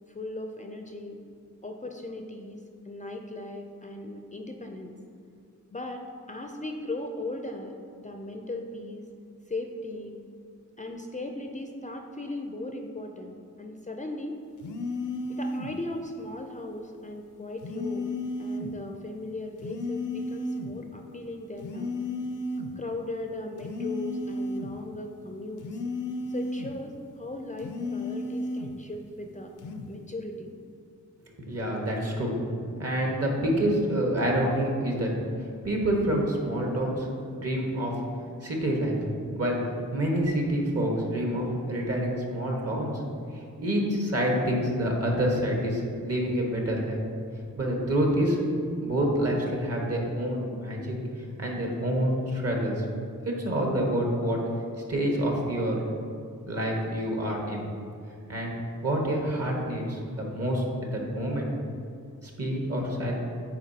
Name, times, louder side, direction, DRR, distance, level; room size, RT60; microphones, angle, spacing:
voice 1, 0.1-1.2 1.6-4.9 5.7-7.7 8.0-9.1 9.5-10.2 10.8-14.4 15.3-18.1 18.4-21.9 22.8-25.8 26.3-29.5 29.9-30.5, left 2 dB, 25° left, 3 dB, 0.5 m, -38 dB
sound 1, 14.6-15.8 17.6-18.8 19.6-20.8 21.6-22.8 23.6-24.8 25.6-26.8 27.6-28.8 29.6-29.9, left 2 dB, 75° left, 0.5 m, -33 dB
voice 2, 31.4-32.4 32.8-35.1 35.6-38.0 38.4-38.9 39.3-39.6 39.9-43.0 43.6-47.0 47.6-48.4 48.8-52.8 53.2-54.4 54.9-55.8 56.4-57.7 58.3-58.5 58.8-61.5 62.2-63.1, equal, 50° right, -1 dB, 1.4 m, -27 dB
9.1 x 3.9 x 2.8 m, 2.4 s
cardioid pair, 55°, 31 cm